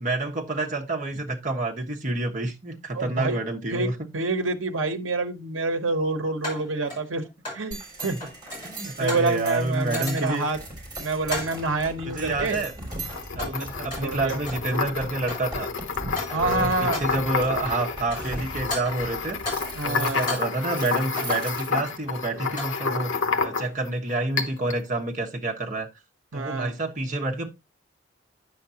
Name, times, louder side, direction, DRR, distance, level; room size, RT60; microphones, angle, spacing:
voice 1, 0.0-4.1 8.2-8.3 8.6-10.5 12.0-12.7 13.4-15.7 16.3-19.4 19.8-25.9 26.3-27.5, right 2 dB, 40° right, 1.3 m, -28 dB
voice 2, 2.9-3.4 3.7-7.3 7.5-8.2 9.0-10.6 11.0-12.6 13.4-13.7 14.0-14.4 16.3-17.0 19.8-20.3 26.3-26.7, right 3 dB, 90° right, 1.0 m, -27 dB
sound 1, 4.2-4.3 6.4-7.7 8.0-9.4 9.8-10.5 11.3-11.7 12.4-12.8 13.1-14.7 15.0-15.6 16.0-16.6 16.9-17.3 17.9-18.4 18.7-19.8 20.1-21.4 22.3-22.9, left 1 dB, 25° left, 6.3 m, -36 dB
sound 2, 7.7-22.0, right 2 dB, 20° right, 3.5 m, -39 dB
sound 3, 12.9-23.9 24.4-24.8, left 5 dB, 90° left, 0.9 m, -30 dB
9.6 x 6.6 x 2.8 m
head